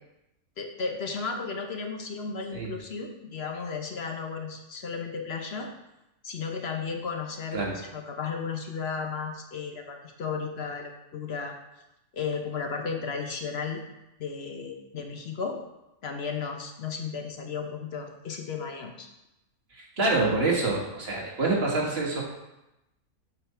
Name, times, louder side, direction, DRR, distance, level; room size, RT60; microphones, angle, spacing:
voice 1, 0.6-5.7 6.2-11.5 12.1-13.8 14.2-15.6 16.0-19.1, left 5 dB, 50° left, 4 dB, 1.0 m, -34 dB
voice 2, 19.7-22.2, right 3 dB, 45° right, -3 dB, 1.9 m, -26 dB
7.6 x 4.2 x 5.6 m, 0.92 s
omnidirectional pair, 1.5 m